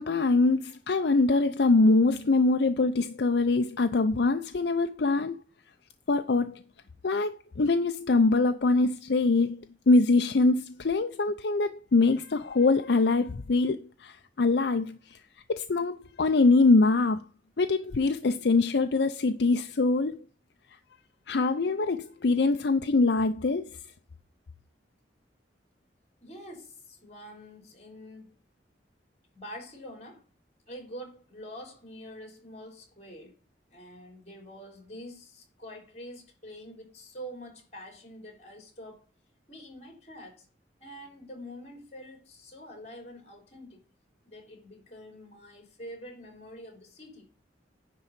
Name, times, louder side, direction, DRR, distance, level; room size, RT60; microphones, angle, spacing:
voice 1, 0.0-5.4 6.1-6.6 7.0-15.2 15.5-17.2 17.6-20.2 21.3-23.8, left 3 dB, 70° left, 0.6 m, -24 dB
voice 2, 26.2-28.3 29.3-30.2 30.7-33.4 33.7-39.1 39.5-40.5 40.8-43.8 44.3-47.2, equal, 40° left, 3.4 m, -46 dB
10.5 x 3.9 x 7.3 m
head